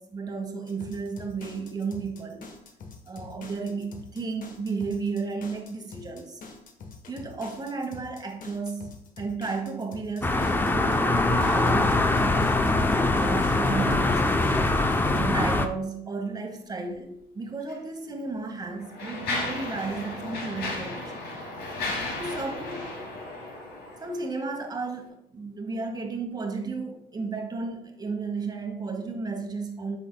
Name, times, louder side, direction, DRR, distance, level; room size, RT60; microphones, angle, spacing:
voice 1, 0.0-2.5 3.1-6.4 7.1-12.4 13.2-14.5 15.1-21.1 22.2-22.9 24.0-30.0, right 4 dB, 25° right, 4 dB, 1.2 m, -33 dB
sound 1, 0.7-15.2, left 4 dB, 55° left, 1.1 m, -45 dB
sound 2, 10.2-15.7, left 2 dB, 10° left, 0.5 m, -23 dB
Mechanisms, 17.6-17.8 18.5-24.2, left 2 dB, 75° left, 2.3 m, -34 dB
8.6 x 5.8 x 2.2 m, 0.72 s
cardioid pair, 110°, 17 cm